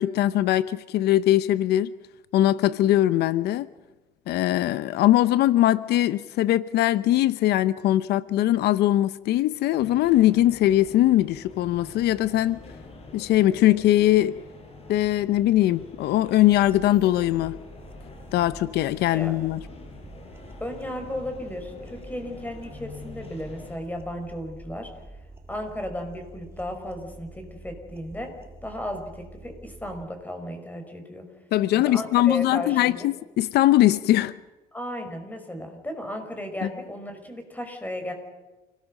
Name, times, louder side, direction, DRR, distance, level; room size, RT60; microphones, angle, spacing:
voice 1, 0.0-1.9 2.3-3.7 4.3-12.6 13.1-14.4 14.9-17.6 18.3-19.6 31.5-34.3 36.6-36.7, left 14 dB, 75° left, 16 dB, 0.7 m, -21 dB
sound 1, 9.8-23.8, left 3 dB, 35° left, 5.4 m, -45 dB
sound 2, 16.5-30.0, right 2 dB, 15° right, 3.3 m, -47 dB
voice 2, 20.6-25.2 25.5-28.3 28.6-31.2 31.7-33.1 34.7-38.1, left 1 dB, 10° left, 5 dB, 5.4 m, -35 dB
29.0 x 18.5 x 6.5 m, 1.1 s
cardioid pair, 110°, 17 cm